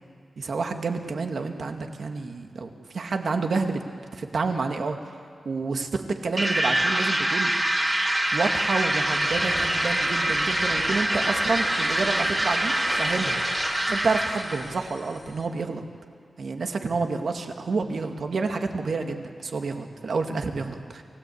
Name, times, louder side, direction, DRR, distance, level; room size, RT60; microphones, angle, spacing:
voice 1, 0.4-3.8 4.1-5.0 5.5-7.5 8.3-13.4 13.9-15.8 16.4-21.0, right 4 dB, 65° right, 5 dB, 1.9 m, -29 dB
sound 1, 6.4-14.6, right 1 dB, 20° right, 2.6 m, -25 dB
sound 2, 7.5-15.5, left 3 dB, 65° left, 3.6 m, -41 dB
28.5 x 17.0 x 8.5 m, 2.2 s
wide cardioid pair, 115°, 0 cm